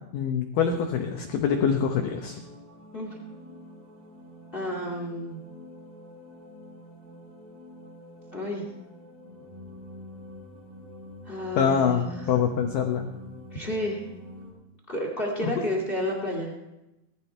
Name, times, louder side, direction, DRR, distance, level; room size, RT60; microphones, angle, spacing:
voice 1, 0.1-2.4 11.6-13.1 15.4-15.5, left 7 dB, 80° left, 4 dB, 1.9 m, -25 dB
sound 1, 0.6-14.5, left 1 dB, 50° right, 7.9 m, -47 dB
voice 2, 4.5-5.4 8.3-8.6 11.2-12.1 13.5-14.0 14.9-16.5, left 1 dB, 35° left, 2 dB, 0.8 m, -31 dB
18.5 x 12.5 x 4.6 m, 0.95 s
omnidirectional pair, 5.2 m